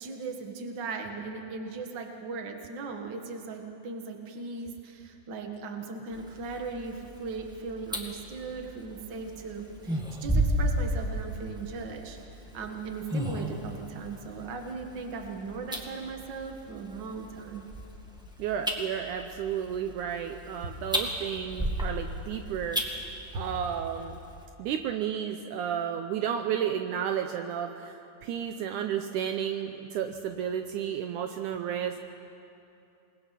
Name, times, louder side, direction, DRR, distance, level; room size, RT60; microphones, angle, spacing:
voice 1, 0.0-12.2 12.5-17.7, right 4 dB, 40° right, 4 dB, 1.9 m, -38 dB
sound 1, 6.1-24.4, right 1 dB, 5° right, 0.8 m, -35 dB
voice 2, 18.4-22.8 23.3-24.2 24.6-32.0, right 9 dB, 75° right, 6 dB, 2.1 m, -32 dB
27.5 x 20.5 x 5.9 m, 2.7 s
omnidirectional pair, 3.8 m